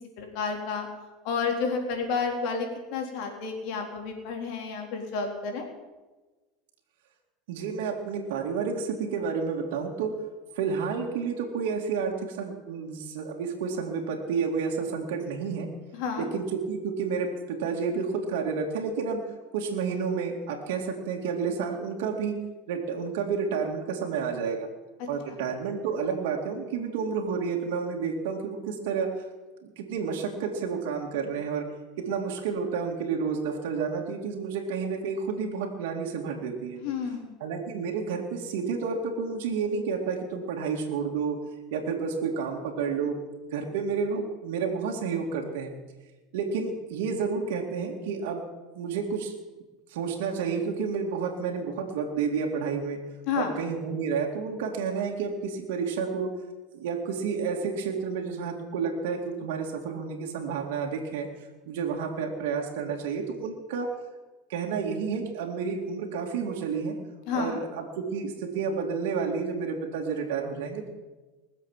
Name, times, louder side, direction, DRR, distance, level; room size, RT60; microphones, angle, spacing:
voice 1, 0.2-0.9 1.2-5.6 15.9-16.3 25.3-25.4 36.8-37.3 53.3-53.5 67.3-67.6, left 5 dB, 65° left, 3 dB, 3.7 m, -30 dB
voice 2, 7.5-10.1 10.6-15.7 16.2-19.2 19.5-22.4 22.7-24.7 25.1-29.1 29.8-31.7 32.0-36.8 37.4-41.4 41.7-43.2 43.5-45.7 46.3-48.4 48.7-49.3 49.9-53.0 53.4-56.3 56.7-61.3 61.7-63.9 64.5-67.0 67.3-70.9, right 5 dB, 80° right, 1 dB, 2.3 m, -30 dB
20.5 x 7.6 x 7.3 m, 1.2 s
supercardioid pair, 120°, 0 cm